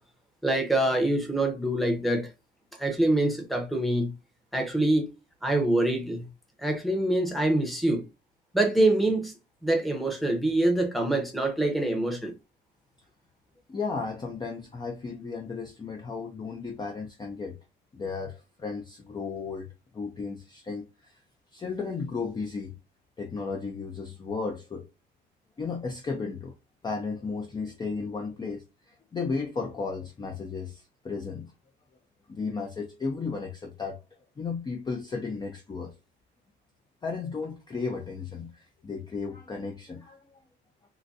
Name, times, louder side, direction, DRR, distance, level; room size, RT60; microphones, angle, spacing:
voice 1, 0.4-2.3 2.8-4.1 4.5-5.1 5.4-6.3 6.6-8.0 8.5-9.3 9.6-12.3, right 1 dB, ahead, 0.8 m, -25 dB
voice 2, 13.7-17.6 17.9-19.7 19.9-21.2 21.5-22.7 23.2-24.9 25.6-26.5 26.8-31.5 32.3-34.0 34.4-35.9 37.0-40.4, left 4 dB, 20° left, 0.5 m, -34 dB
3.8 x 2.2 x 2.5 m
cardioid pair, 130°, 20 cm